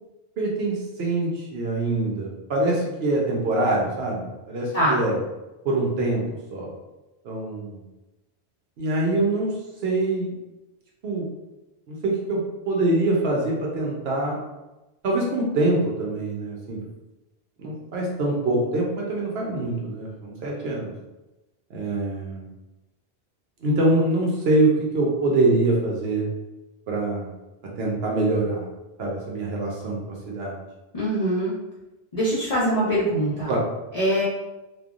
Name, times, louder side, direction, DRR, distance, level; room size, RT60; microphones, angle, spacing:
voice 1, 0.4-5.2 5.6-6.2 6.5-6.7 7.2-7.8 8.8-9.5 9.8-10.3 11.0-11.3 11.9-12.4 12.7-14.4 15.0-16.8 17.6-20.9 21.7-22.5 23.6-26.3 26.9-27.3 27.8-28.7 29.0-30.0 30.3-30.6 33.5-33.6, right 2 dB, 75° right, -2 dB, 0.9 m, -24 dB
voice 2, 30.9-31.5 32.1-33.5 33.9-34.2, equal, 45° left, -8 dB, 0.6 m, -23 dB
3.2 x 2.1 x 2.4 m, 1.0 s
omnidirectional pair, 1.1 m